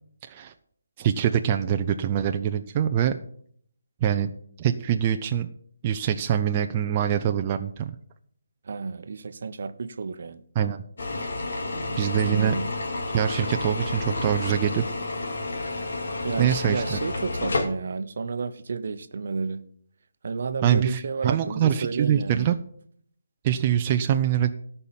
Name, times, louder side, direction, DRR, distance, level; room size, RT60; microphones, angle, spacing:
voice 1, 1.0-3.1 4.0-4.3 4.6-5.5 5.8-7.9 10.6-10.8 12.0-12.5 13.1-14.8 16.4-17.0 20.6-22.5 23.4-24.5, right 9 dB, 25° right, 0.6 m, -24 dB
voice 2, 8.6-10.4 12.2-12.7 16.2-19.6 20.2-22.5, right 4 dB, 55° right, 0.8 m, -31 dB
sound 1, 11.0-17.7, left 2 dB, 65° left, 2.3 m, -30 dB
13.5 x 5.6 x 7.3 m
figure-of-eight pair, 155°, 0 cm